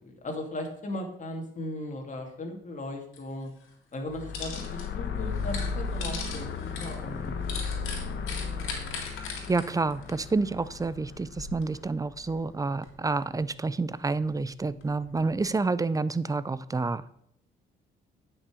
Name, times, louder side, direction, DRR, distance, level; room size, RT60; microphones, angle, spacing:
voice 1, 0.0-3.5 3.9-7.5 8.1-8.7, left 1 dB, 40° left, 2 dB, 2.4 m, -37 dB
sound 1, 3.1-3.2 3.6-4.9 5.2-10.8 11.1-11.8 12.2-13.4 13.9-15.5, left 5 dB, 90° left, 2.2 m, -40 dB
sound 2, 4.1-12.4, left 5 dB, 65° left, 1.2 m, -35 dB
voice 2, 9.5-17.0, right 3 dB, 15° right, 17 dB, 0.4 m, -29 dB
9.3 x 5.9 x 5.0 m, 0.72 s
cardioid pair, 90°, 20 cm